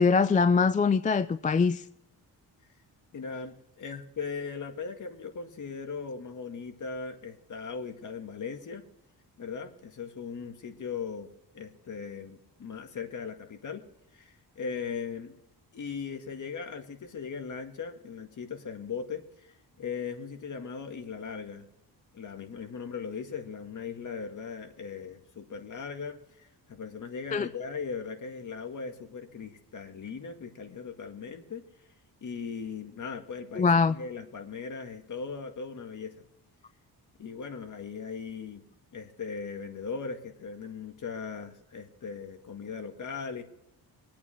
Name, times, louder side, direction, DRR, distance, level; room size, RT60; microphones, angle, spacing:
voice 1, 0.0-1.8 27.3-27.5 33.6-33.9, left 5 dB, 20° left, 0.3 m, -23 dB
voice 2, 3.1-8.8 9.4-11.3 11.5-13.8 14.1-15.4 15.7-21.7 22.1-31.6 32.2-36.2 37.2-38.6 38.9-43.4, left 5 dB, 50° left, 2.0 m, -39 dB
23.0 x 8.7 x 3.4 m
cardioid pair, 120°, 39 cm